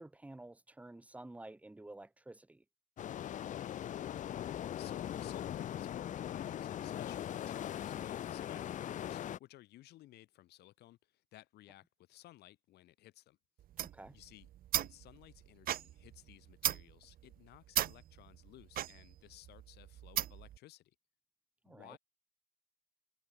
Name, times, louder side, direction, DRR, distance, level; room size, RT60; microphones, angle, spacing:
voice 1, 0.0-2.6 13.8-14.1 21.6-22.0, right 2 dB, 10° right, 1.4 m, -51 dB
sound 1, 3.0-9.4, left 11 dB, 50° left, 0.7 m, -40 dB
voice 2, 3.8-11.0 11.3-13.4 14.1-14.5 14.7-20.9 21.7-22.0, left 15 dB, 75° left, 2.7 m, -58 dB
sound 2, 13.6-20.6, right 12 dB, 60° right, 1.0 m, -38 dB
cardioid pair, 110°, 17 cm